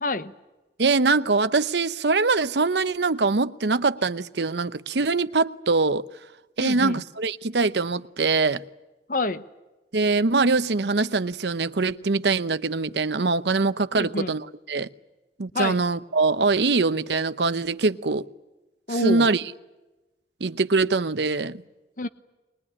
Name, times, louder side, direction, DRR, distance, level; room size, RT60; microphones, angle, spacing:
voice 1, 0.0-0.3 6.6-7.0 9.1-9.4 13.9-14.3 15.5-15.8 18.9-19.3 22.0-22.1, left 2 dB, 45° left, 1.0 m, -27 dB
voice 2, 0.8-6.0 6.6-8.6 9.9-14.9 15.4-18.3 18.9-19.5 20.4-21.6, right 3 dB, 70° right, 0.8 m, -23 dB
22.5 x 21.5 x 9.9 m
head